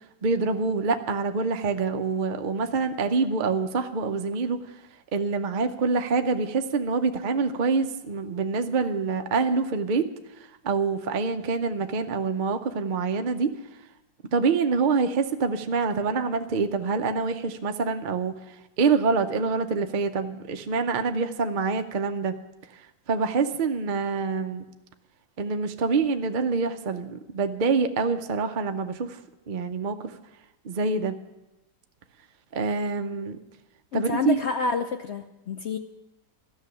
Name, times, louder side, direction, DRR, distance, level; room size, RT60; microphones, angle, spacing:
voice 1, 0.2-4.6 5.1-10.1 10.6-13.6 14.3-22.3 23.1-24.7 25.4-29.2 29.5-30.1 30.6-31.2 32.5-33.4 33.9-34.4, right 4 dB, 75° right, 7 dB, 0.4 m, -26 dB
voice 2, 33.9-35.8, left 4 dB, 70° left, 6 dB, 0.6 m, -28 dB
13.0 x 6.6 x 9.6 m, 0.97 s
omnidirectional pair, 1.9 m